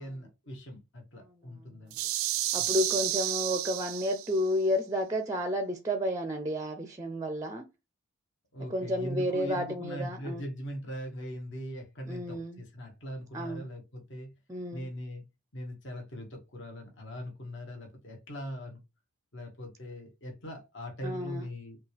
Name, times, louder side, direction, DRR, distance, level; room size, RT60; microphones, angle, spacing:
voice 1, 0.0-2.0 2.6-2.7 8.5-14.3 14.7-15.2 15.5-18.8 19.3-21.8, equal, 55° left, 1.2 m, -40 dB
voice 2, 1.2-1.5 2.5-7.6 8.7-10.5 12.1-12.6 13.3-13.7 14.5-14.9 21.0-21.5, equal, 15° right, 0.5 m, -31 dB
sound 1, 1.9-4.5, right 14 dB, 80° right, 0.4 m, -31 dB
5.9 x 2.4 x 3.2 m
head